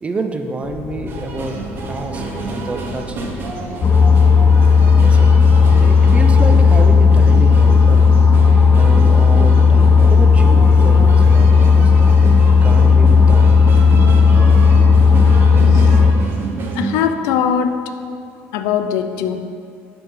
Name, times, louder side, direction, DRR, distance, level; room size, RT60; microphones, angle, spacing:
voice 1, 0.0-1.6 1.9-2.2 2.5-3.3 5.0-8.1 8.8-11.9 12.6-13.5, right 3 dB, 25° right, 7 dB, 0.6 m, -28 dB
sound 1, 0.6-5.5, left 2 dB, 65° left, 1.8 m, -35 dB
sound 2, 1.1-17.0, right 3 dB, 40° right, 1.2 m, -26 dB
sound 3, 3.8-16.1, left 5 dB, 30° left, 0.5 m, -11 dB
voice 2, 16.8-17.8 18.5-19.4, left 8 dB, 80° left, 9 dB, 0.5 m, -20 dB
6.8 x 5.7 x 5.6 m, 2.4 s
supercardioid pair, 105°, 5 cm